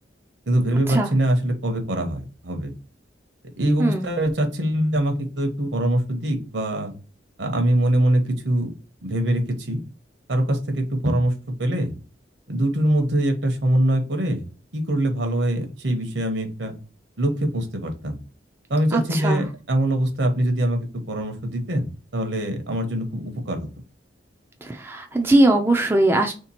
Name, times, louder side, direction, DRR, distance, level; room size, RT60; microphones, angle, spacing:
voice 1, 0.5-2.7 3.6-6.9 7.4-8.7 9.0-9.8 10.3-11.3 11.6-11.9 12.5-14.4 14.7-16.7 17.2-18.2 18.7-21.9 22.1-23.7, right 1 dB, 75° right, 5 dB, 0.9 m, -23 dB
voice 2, 18.9-19.4 24.6-26.3, right 2 dB, 10° right, 3 dB, 0.4 m, -20 dB
3.3 x 2.9 x 4.2 m, 0.36 s
head